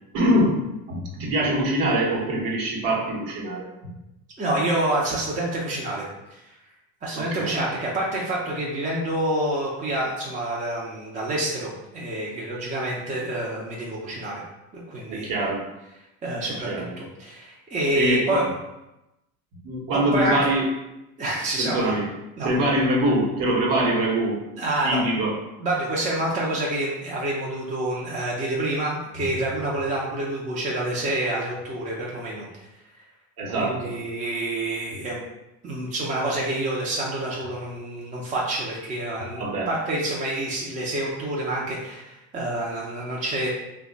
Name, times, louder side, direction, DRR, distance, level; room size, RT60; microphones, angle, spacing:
voice 1, 0.1-3.7 7.1-7.6 15.1-15.6 16.7-16.9 17.9-18.4 19.6-20.7 21.6-22.1 22.4-24.4 24.8-25.4 33.4-33.9 39.4-39.7, right 1 dB, 55° right, -2 dB, 1.1 m, -24 dB
voice 2, 4.4-6.0 6.3-6.5 7.0-14.4 14.7-15.3 16.2-18.4 19.9-20.4 21.2-22.0 22.4-22.5 24.6-25.3 25.6-32.5 33.5-35.2 35.6-43.5, right 1 dB, 20° right, -4 dB, 0.6 m, -27 dB
2.7 x 2.3 x 3.9 m, 0.94 s
supercardioid pair, 105°, 41 cm